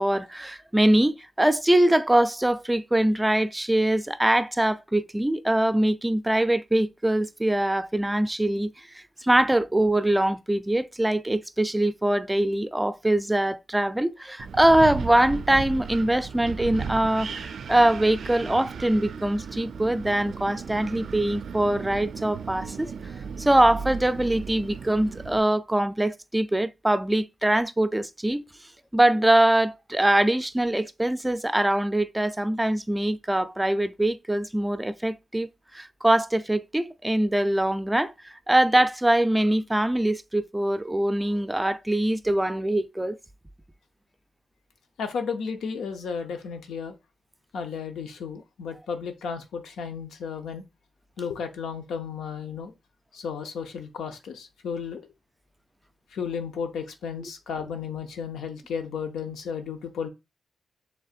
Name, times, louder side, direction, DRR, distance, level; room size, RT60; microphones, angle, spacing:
voice 1, 0.0-22.9 23.4-28.4 28.9-43.2, right 1 dB, 15° right, 0.4 m, -23 dB
Wind, 14.4-25.4, right 6 dB, 75° right, 0.4 m, -36 dB
voice 2, 45.0-46.9 47.5-50.6 51.2-52.7 53.1-55.1 56.1-60.1, left 6 dB, 90° left, 0.6 m, -33 dB
6.5 x 3.4 x 2.4 m
supercardioid pair, 50°, 0 cm